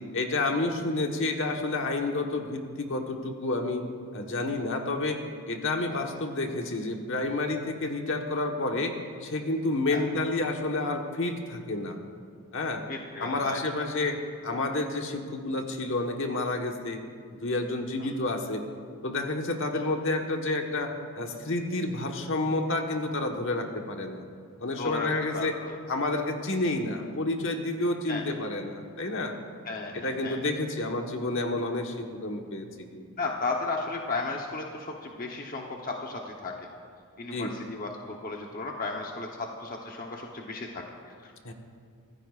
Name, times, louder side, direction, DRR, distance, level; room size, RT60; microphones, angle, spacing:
voice 1, 0.1-3.8 4.1-5.2 5.5-8.9 9.2-12.0 12.5-12.8 13.2-14.2 14.4-17.0 17.3-18.6 19.0-24.2 24.6-25.6 25.9-29.3 29.9-33.0 37.3-37.5 41.4-41.5, left 2 dB, 60° left, 3 dB, 1.3 m, -30 dB
voice 2, 12.9-13.9 18.0-18.1 24.8-26.0 28.1-28.2 29.6-30.4 33.2-36.5 37.2-41.5, left 3 dB, 40° left, 0 dB, 0.9 m, -35 dB
24.0 x 15.5 x 2.5 m, 2.2 s
head